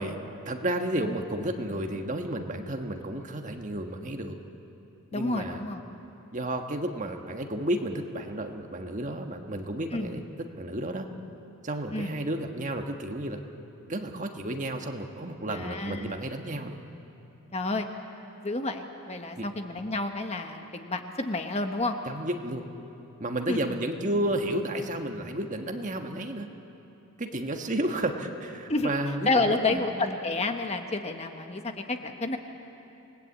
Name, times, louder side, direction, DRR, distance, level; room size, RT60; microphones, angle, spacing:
voice 1, 0.0-4.4 5.1-5.7 6.3-10.3 10.6-11.1 11.6-13.4 13.9-16.8 19.3-19.4 22.0-22.7 23.2-26.5 27.2-29.8, right 1 dB, 35° right, 4 dB, 1.4 m, -32 dB
voice 2, 5.1-5.8 9.9-10.1 11.9-12.1 15.5-16.2 17.5-17.9 18.4-22.0 23.5-23.6 28.7-28.9 29.3-32.4, left 2 dB, 30° left, 5 dB, 1.2 m, -29 dB
28.0 x 19.5 x 8.5 m, 2.9 s
head